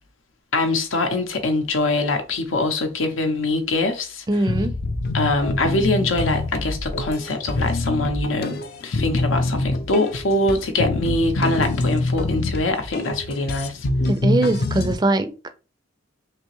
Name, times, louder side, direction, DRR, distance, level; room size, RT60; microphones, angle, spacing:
voice 1, 0.5-4.2 5.1-13.9, left 2 dB, 90° left, 0.7 m, -23 dB
voice 2, 4.3-4.7 14.1-15.3, right 2 dB, 20° right, 0.4 m, -21 dB
sound 1, 4.5-14.9, left 2 dB, 50° left, 0.4 m, -25 dB
3.3 x 2.8 x 3.1 m
head